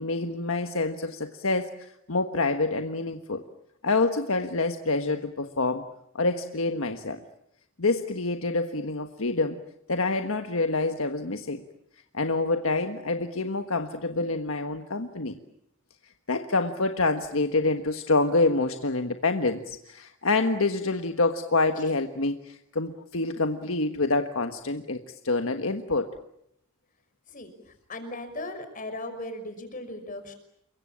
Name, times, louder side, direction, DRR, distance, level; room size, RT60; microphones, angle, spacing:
voice 1, 0.0-3.5 3.8-5.8 6.1-7.2 7.8-9.6 9.9-11.6 12.1-15.4 16.3-26.1, left 3 dB, 75° left, 7 dB, 1.5 m, -27 dB
voice 2, 27.3-30.3, left 1 dB, 40° left, 8 dB, 5.6 m, -38 dB
29.0 x 23.5 x 8.8 m, 0.75 s
head